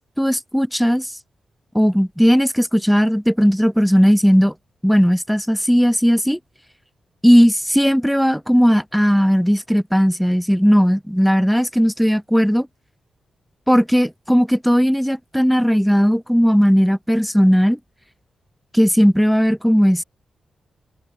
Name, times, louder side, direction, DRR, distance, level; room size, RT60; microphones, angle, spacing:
voice 1, 0.2-1.1 1.7-4.5 4.8-6.4 7.2-12.7 13.7-17.8 18.7-20.0, equal, ahead, 2.1 m, -16 dB
supercardioid pair, 50°, 0 cm